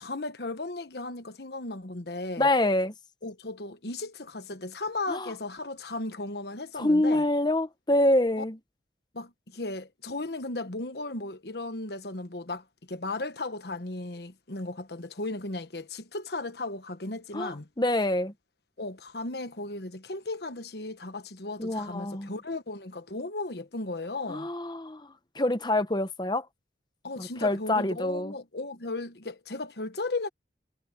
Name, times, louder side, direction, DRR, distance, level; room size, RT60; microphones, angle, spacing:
voice 1, 0.0-2.5 3.2-7.2 9.1-17.7 18.8-24.5 27.0-30.3, left 2 dB, 60° left, 1.2 m, -36 dB
voice 2, 2.4-2.9 5.1-5.3 6.8-8.6 17.3-18.3 21.6-22.3 24.3-25.0 25.4-26.4 27.2-28.3, left 1 dB, 25° left, 1.0 m, -26 dB
head